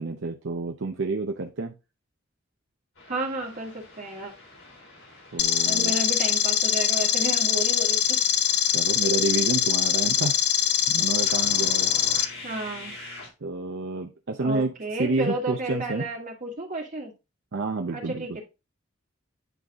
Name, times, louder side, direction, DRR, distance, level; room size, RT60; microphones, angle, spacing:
voice 1, 0.0-1.7 5.3-5.9 8.7-10.4 10.9-11.9 13.4-14.7 15.0-16.0 17.5-18.2, right 3 dB, 65° right, 0.7 m, -29 dB
sound 1, 2.9-13.3, left 2 dB, 80° left, 4.1 m, -46 dB
voice 2, 3.1-4.3 5.6-8.2 12.4-12.9 14.4-17.1 17.9-18.3, right 2 dB, 40° right, 2.1 m, -32 dB
sound 2, 5.4-12.2, left 9 dB, 55° left, 0.7 m, -23 dB
9.4 x 4.0 x 3.5 m
head